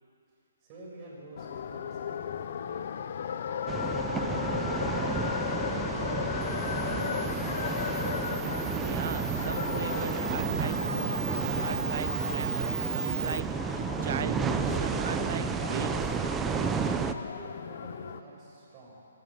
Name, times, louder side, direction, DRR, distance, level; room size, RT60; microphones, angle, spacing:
voice 1, 0.6-2.9 3.3-5.9 6.6-8.3 17.3-19.1, right 1 dB, 25° right, -4 dB, 6.9 m, -49 dB
sound 1, 1.4-18.2, left 8 dB, 50° left, 0.9 m, -36 dB
sound 2, 3.7-17.1, right 6 dB, 10° right, 0.7 m, -32 dB
Camera, 6.4-13.4, right 4 dB, 90° right, 0.7 m, -37 dB
voice 2, 8.8-16.1, right 8 dB, 50° right, 15 dB, 0.6 m, -38 dB
26.0 x 13.5 x 7.8 m, 2.7 s
hypercardioid pair, 155°, 0 cm